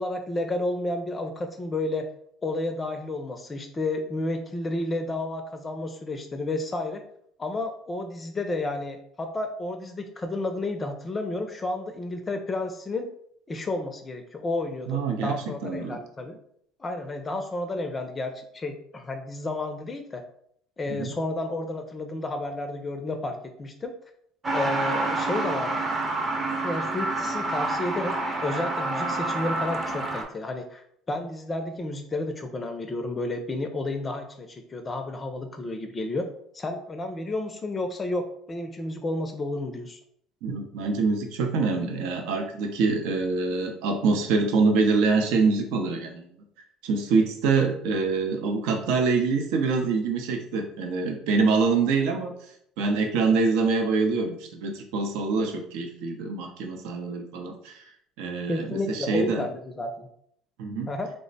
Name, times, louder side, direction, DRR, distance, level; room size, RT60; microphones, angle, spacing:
voice 1, 0.0-2.1 2.4-7.0 7.4-13.1 13.5-16.4 16.8-20.2 20.8-23.9 24.5-25.8 26.6-28.1 28.4-36.3 36.5-40.0 58.5-60.1 60.9-61.1, left 2 dB, 25° left, 6 dB, 0.4 m, -31 dB
voice 2, 14.9-16.0 20.9-21.1 40.4-46.3 46.8-52.3 52.8-57.8 58.2-59.5 60.6-60.9, right 4 dB, 80° right, 4 dB, 0.6 m, -25 dB
Truck, 24.4-30.2, right 2 dB, 25° right, 0.7 m, -28 dB
3.3 x 2.1 x 3.9 m, 0.68 s
supercardioid pair, 95°, 0 cm